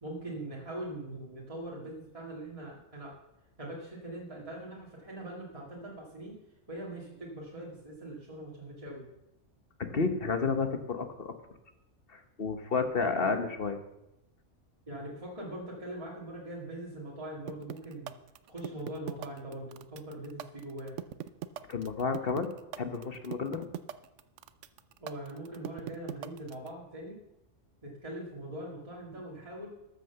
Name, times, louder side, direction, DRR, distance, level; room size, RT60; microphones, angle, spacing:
voice 1, 0.0-3.1 3.6-6.4 6.7-9.0 14.9-18.1 18.4-20.9 25.0-27.2 27.8-29.7, right 1 dB, 25° right, -4 dB, 2.4 m, -42 dB
voice 2, 9.8-11.3 12.1-13.8 21.7-22.5 22.8-23.7, left 4 dB, 50° left, 7 dB, 1.2 m, -31 dB
sound 1, 17.5-26.7, right 11 dB, 75° right, 0.9 m, -39 dB
13.0 x 6.6 x 6.9 m, 0.87 s
omnidirectional pair, 1.3 m